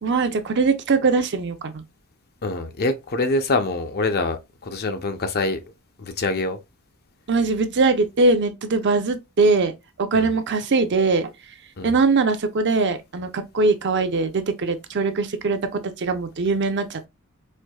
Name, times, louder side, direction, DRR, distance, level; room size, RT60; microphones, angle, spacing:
voice 1, 0.0-1.8 7.3-9.7 10.0-11.3 11.8-17.1, right 3 dB, 55° right, 0.6 m, -21 dB
voice 2, 2.4-5.6 6.0-6.6 10.1-10.3 11.8-11.9, left 2 dB, 45° left, 0.6 m, -25 dB
4.5 x 2.6 x 2.2 m
head